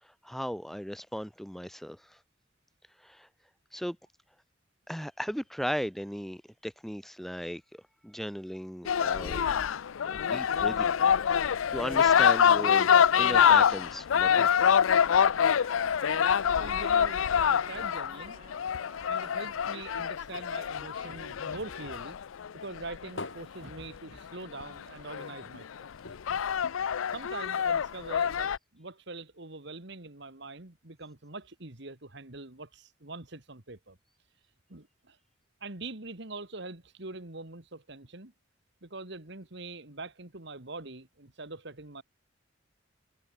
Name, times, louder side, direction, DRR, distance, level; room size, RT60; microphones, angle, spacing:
voice 1, 0.0-2.2 3.0-3.3 3.7-4.0 4.9-9.4 10.0-10.9 11.4-14.5, equal, ahead, 1.4 m, -37 dB
sound 1, 8.9-23.1 24.6-24.7 25.1-25.6 26.1-28.6, left 8 dB, 85° left, 0.5 m, -25 dB
Trumpet, 15.1-19.8, right 4 dB, 30° right, 3.2 m, -52 dB
voice 2, 16.0-18.4 19.1-22.2 22.5-25.9 27.1-34.0 34.7-35.2 35.6-38.3 38.8-42.0, right 3 dB, 60° right, 2.2 m, -43 dB
sound 2, 20.3-22.1 22.4-24.7 25.0-25.1 25.4-25.6 26.0-27.5 28.2-28.3, left 2 dB, 70° left, 3.7 m, -47 dB
head